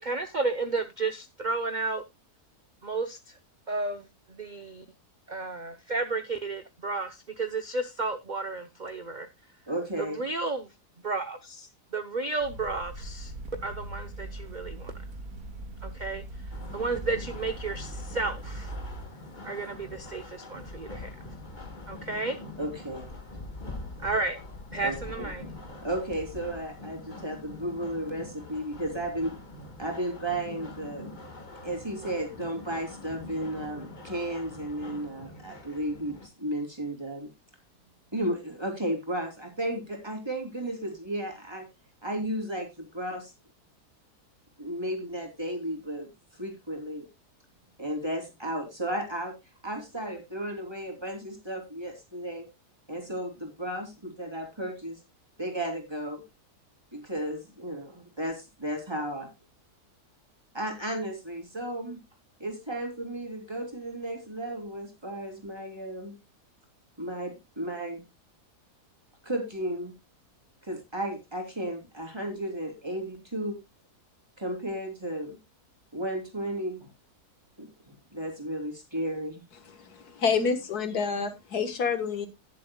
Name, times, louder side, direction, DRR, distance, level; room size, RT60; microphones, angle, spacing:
voice 1, 0.0-2.0 2.8-3.4 3.7-4.8 5.3-9.3 10.0-10.7 11.0-13.3 13.6-14.9 15.8-16.2 16.7-18.8 19.4-21.1 21.9-22.4 24.0-24.4 24.7-25.4, right 3 dB, 35° right, 9 dB, 0.9 m, -32 dB
voice 2, 9.7-10.2 22.6-23.1 24.8-25.3 25.8-29.4 29.8-31.2 31.6-37.3 38.1-41.7 42.0-43.3 44.6-46.1 46.4-47.1 47.8-49.4 49.6-52.5 52.9-55.0 55.4-56.2 56.9-59.3 60.5-62.0 62.4-66.2 67.0-68.0 69.2-69.9 70.6-73.6 74.4-75.4 75.9-76.9 77.6-79.4, right 1 dB, 15° right, 3 dB, 3.4 m, -34 dB
sound 1, 12.4-19.0, right 1 dB, 70° right, 2.5 m, -40 dB
sound 2, 16.5-36.3, left 2 dB, 30° left, 1.6 m, -44 dB
voice 3, 79.7-82.3, left 5 dB, 75° left, 10 dB, 2.0 m, -28 dB
18.5 x 7.5 x 2.3 m, 0.22 s
omnidirectional pair, 1.6 m